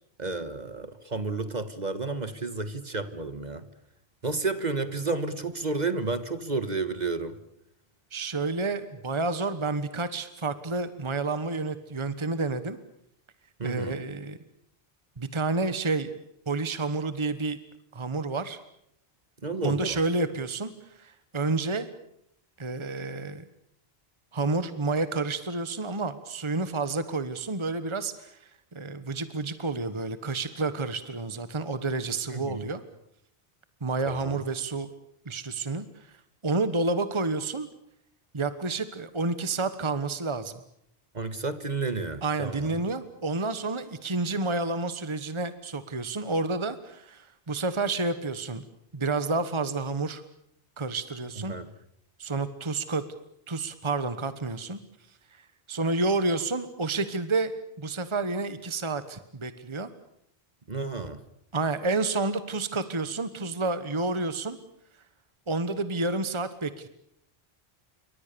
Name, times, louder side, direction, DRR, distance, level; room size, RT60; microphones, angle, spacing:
voice 1, 0.2-3.6 4.2-7.4 13.6-14.0 19.4-20.0 32.3-32.6 34.1-34.4 41.1-42.8 51.4-51.7 60.7-61.2, right 3 dB, 45° right, 11 dB, 1.6 m, -31 dB
voice 2, 8.1-12.8 13.6-14.4 15.2-16.1 16.5-17.6 17.9-18.6 19.6-21.9 22.6-23.4 24.3-32.8 33.8-34.9 35.2-36.2 36.4-37.7 38.3-40.5 42.2-48.6 48.9-50.2 50.8-51.6 52.2-53.0 53.5-54.8 55.3-57.5 57.8-59.9 61.5-64.6 65.5-66.9, right 3 dB, 30° right, 11 dB, 1.3 m, -30 dB
28.5 x 24.0 x 6.9 m, 0.74 s
omnidirectional pair, 1.1 m